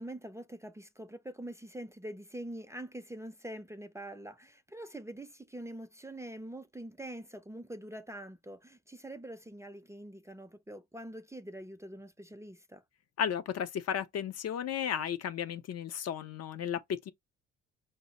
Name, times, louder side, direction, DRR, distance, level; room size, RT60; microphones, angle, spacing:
voice 1, 0.0-12.8, right 1 dB, 10° right, 0.5 m, -44 dB
voice 2, 13.2-17.1, left 8 dB, 55° left, 0.6 m, -34 dB
5.4 x 2.0 x 4.0 m
cardioid pair, 90°, 30 cm